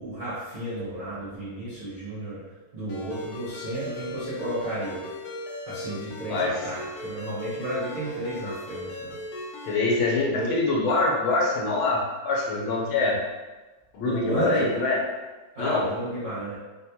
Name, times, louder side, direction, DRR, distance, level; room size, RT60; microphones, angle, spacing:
voice 1, 0.0-2.4 2.7-5.1 5.7-9.1 10.3-10.6 14.0-14.7 15.6-16.5, right 1 dB, 70° right, -12 dB, 0.4 m, -32 dB
Ringtone, 2.9-9.8, left 2 dB, 70° left, 0.9 m, -38 dB
voice 2, 9.6-12.0 12.2-13.1 13.9-15.0 15.6-15.8, left 3 dB, 90° left, -2 dB, 1.6 m, -24 dB
4.0 x 2.2 x 2.8 m, 1.2 s
omnidirectional pair, 2.2 m